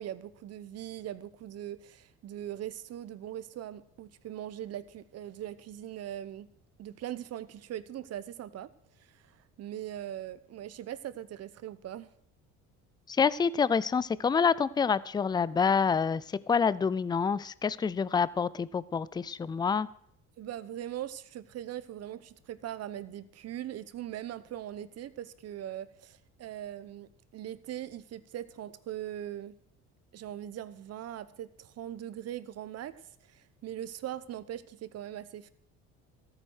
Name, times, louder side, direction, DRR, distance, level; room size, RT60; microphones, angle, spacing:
voice 1, 0.0-6.5 6.8-8.7 9.0-12.1 20.4-29.5 30.1-33.0 33.3-35.5, right 11 dB, 55° right, 15 dB, 1.0 m, -41 dB
voice 2, 13.1-19.9, left 6 dB, 15° left, 19 dB, 0.4 m, -27 dB
13.5 x 9.0 x 6.3 m, 0.68 s
cardioid pair, 100°, 31 cm